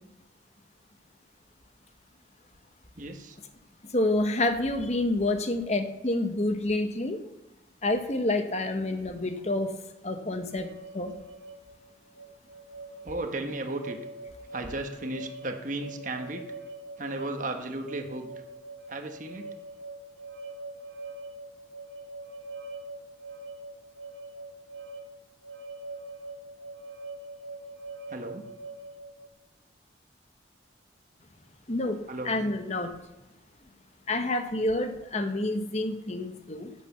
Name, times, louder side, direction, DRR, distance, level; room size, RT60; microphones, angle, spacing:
voice 1, 2.9-3.4 13.0-14.0 14.5-16.4 17.0-18.3 18.9-19.5 28.1-28.5 32.1-32.4, right 2 dB, 40° right, 5 dB, 1.3 m, -35 dB
voice 2, 3.9-7.2 7.8-9.7 10.0-10.7 10.9-11.1 31.7-32.9 34.1-36.7, left 2 dB, 35° left, 7 dB, 1.1 m, -28 dB
sound 1, 10.5-29.3, right 2 dB, 85° right, 1.8 m, -43 dB
11.5 x 9.5 x 7.0 m, 0.99 s
head